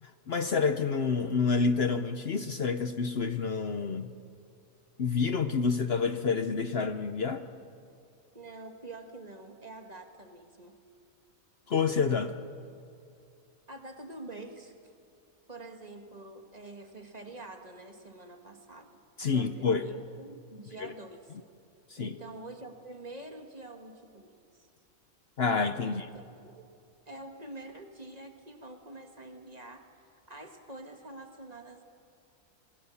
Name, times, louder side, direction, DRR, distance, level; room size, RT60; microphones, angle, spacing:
voice 1, 0.0-4.1 5.0-7.4 11.7-12.3 19.2-19.9 20.8-20.9 21.9-22.1 25.4-26.1, left 5 dB, 50° left, 9 dB, 1.0 m, -28 dB
voice 2, 8.3-10.8 13.7-14.7 15.5-19.0 19.3-21.3 22.0-24.7 25.8-26.7 27.1-29.9 30.3-31.8, right 2 dB, 30° right, 5 dB, 1.8 m, -46 dB
26.5 x 20.5 x 7.1 m, 2.4 s
omnidirectional pair, 1.4 m